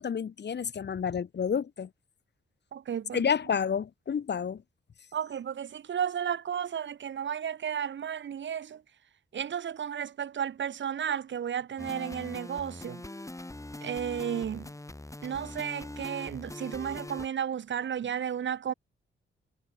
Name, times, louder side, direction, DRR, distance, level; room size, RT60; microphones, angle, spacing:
voice 1, 0.0-1.9 3.1-4.6, left 7 dB, 55° left, 1.5 m, -30 dB
voice 2, 2.7-3.2 5.1-8.8 9.3-13.0 13.8-14.7 15.2-18.7, right 8 dB, 60° right, 1.0 m, -33 dB
sound 1, 11.8-17.3, left 2 dB, 15° left, 5.5 m, -42 dB
cardioid pair, 80°, 21 cm